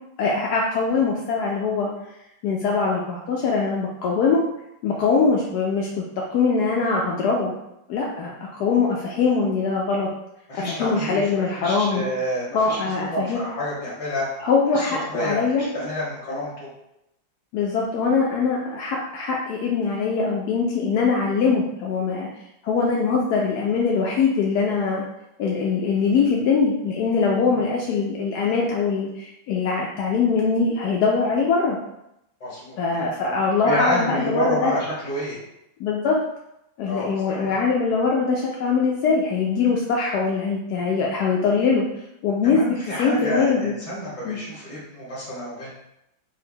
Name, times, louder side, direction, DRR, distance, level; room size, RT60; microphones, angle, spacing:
voice 1, 0.2-1.9 2.4-4.4 4.8-6.0 6.3-7.5 7.9-10.1 10.5-12.0 12.5-13.4 14.4-15.7 17.5-22.3 22.6-25.0 25.4-31.8 32.8-34.7 35.8-36.2 36.8-41.8 42.2-43.7 44.2-44.4, left 4 dB, 85° left, -2 dB, 0.8 m, -22 dB
voice 2, 10.5-11.3 11.5-14.3 14.7-16.7 27.5-27.6 32.4-33.0 33.6-35.4 36.9-37.6 42.4-45.7, equal, 20° left, -7 dB, 1.1 m, -29 dB
3.7 x 2.1 x 4.3 m, 0.84 s
omnidirectional pair, 2.2 m